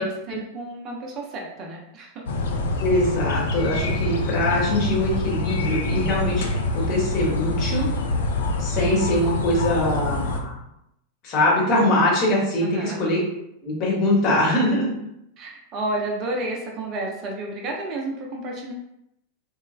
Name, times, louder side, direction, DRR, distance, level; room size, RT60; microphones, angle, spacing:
voice 1, 0.0-2.2 12.6-13.1 15.4-18.7, right 2 dB, 35° right, -1 dB, 0.5 m, -31 dB
sound 1, 2.3-10.4, left 2 dB, 60° left, 0.3 m, -26 dB
voice 2, 2.8-6.5 6.7-7.8 8.6-10.5 11.2-13.2 13.6-14.9, left 1 dB, 40° left, -3 dB, 0.9 m, -22 dB
3.0 x 2.0 x 2.3 m, 0.83 s
figure-of-eight pair, 90°, 0 cm